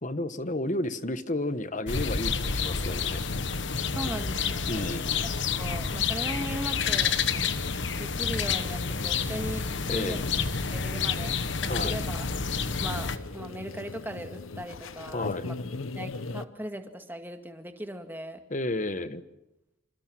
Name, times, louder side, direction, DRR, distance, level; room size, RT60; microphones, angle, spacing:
voice 1, 0.0-3.2 4.7-5.3 9.9-10.3 11.6-11.9 15.1-15.5 18.5-19.2, left 1 dB, 40° left, 12 dB, 1.2 m, -32 dB
sound 1, 1.9-13.2, left 5 dB, 65° left, 1.3 m, -29 dB
sound 2, 2.1-16.5, left 3 dB, 80° left, 1.0 m, -41 dB
voice 2, 3.9-5.0 5.3-7.2 7.9-9.6 9.9-10.3 10.7-12.4 12.8-18.4, right 1 dB, 10° right, 6 dB, 2.0 m, -39 dB
27.0 x 26.5 x 6.1 m, 0.91 s
head